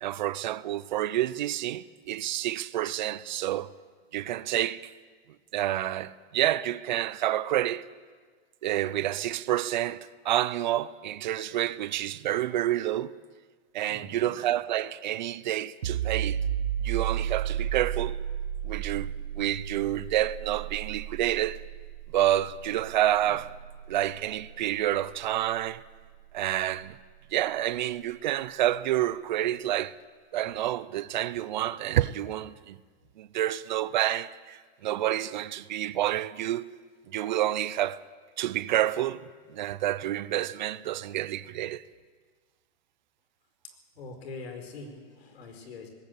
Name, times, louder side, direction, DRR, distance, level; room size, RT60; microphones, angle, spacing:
voice 1, 0.0-3.7 4.1-4.9 5.5-7.8 8.6-13.2 13.7-16.4 16.8-18.2 18.6-21.6 22.1-23.5 23.9-25.8 26.3-27.0 27.3-30.0 30.3-32.8 33.2-36.7 37.1-38.0 38.4-39.2 39.5-41.8, right 13 dB, 45° right, 0.6 m, -29 dB
voice 2, 13.9-14.3 44.0-45.9, left 3 dB, 75° left, 4.8 m, -43 dB
sound 1, 15.8-27.3, right 10 dB, 75° right, 1.6 m, -34 dB
19.5 x 17.5 x 8.3 m
supercardioid pair, 175°, 31 cm